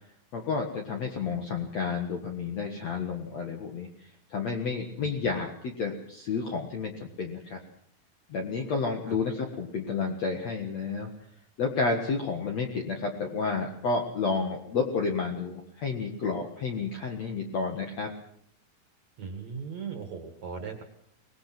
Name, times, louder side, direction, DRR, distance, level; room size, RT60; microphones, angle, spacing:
voice 1, 0.3-7.6 8.3-11.1 11.6-18.1, left 4 dB, 50° left, 2 dB, 2.4 m, -31 dB
voice 2, 19.2-20.8, right 6 dB, 50° right, 5 dB, 2.6 m, -38 dB
24.5 x 20.0 x 6.0 m, 0.66 s
omnidirectional pair, 4.7 m